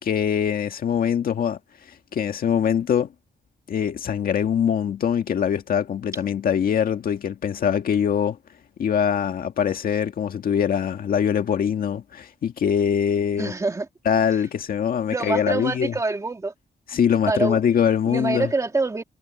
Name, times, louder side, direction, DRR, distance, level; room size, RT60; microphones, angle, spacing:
voice 1, 0.0-1.6 2.1-3.1 3.7-8.4 8.8-13.5 14.1-15.9 16.9-18.5, left 8 dB, 65° left, 1.9 m, -23 dB
voice 2, 13.4-13.9 15.1-16.5 17.3-17.6 18.1-19.0, right 3 dB, 20° right, 2.5 m, -25 dB
wide cardioid pair, 170°, 16 cm